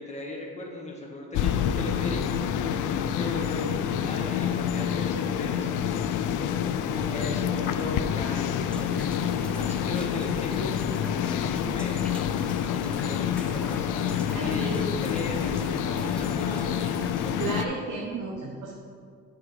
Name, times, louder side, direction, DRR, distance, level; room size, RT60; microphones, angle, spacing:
voice 1, 0.0-2.4 3.1-6.3 6.9-9.3 9.6-10.7 11.4-12.1 12.9-17.0, left 2 dB, 20° left, -2 dB, 1.8 m, -37 dB
sound 1, 1.3-17.6, left 8 dB, 85° left, 0.5 m, -27 dB
sound 2, 8.7-17.3, equal, 5° left, 0.8 m, -45 dB
voice 2, 14.3-14.8 17.4-18.7, right 4 dB, 80° right, -1 dB, 1.0 m, -33 dB
8.5 x 5.1 x 4.9 m, 2.2 s
cardioid pair, 90°, 30 cm